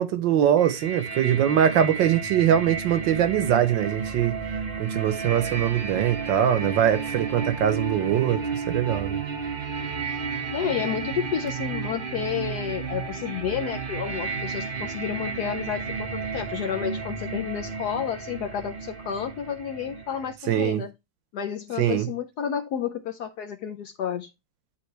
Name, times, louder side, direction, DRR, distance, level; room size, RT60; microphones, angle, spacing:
voice 1, 0.0-4.4 4.8-9.2 20.5-20.8 21.8-22.1, right 10 dB, 70° right, 1.3 m, -22 dB
sound 1, 0.6-20.3, right 5 dB, 50° right, 0.6 m, -32 dB
voice 2, 10.5-20.9 21.3-24.3, left 8 dB, 70° left, 0.9 m, -31 dB
10.0 x 3.7 x 3.2 m
omnidirectional pair, 2.2 m